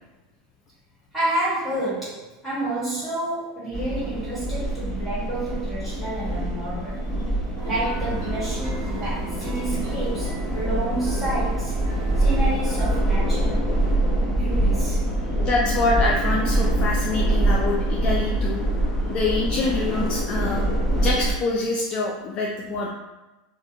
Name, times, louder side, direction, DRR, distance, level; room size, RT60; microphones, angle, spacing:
voice 1, 1.1-7.0 7.6-11.8 12.2-13.9 14.2-15.0, right 1 dB, ahead, -11 dB, 1.4 m, -30 dB
sound 1, 3.7-21.3, right 1 dB, 15° left, 0.9 m, -24 dB
sound 2, 7.6-13.0, right 4 dB, 55° right, 0.6 m, -39 dB
voice 2, 15.4-18.6 19.1-20.7 21.0-22.9, left 3 dB, 40° left, -2 dB, 0.3 m, -25 dB
2.3 x 2.1 x 2.7 m, 1.0 s
supercardioid pair, 135°, 3 cm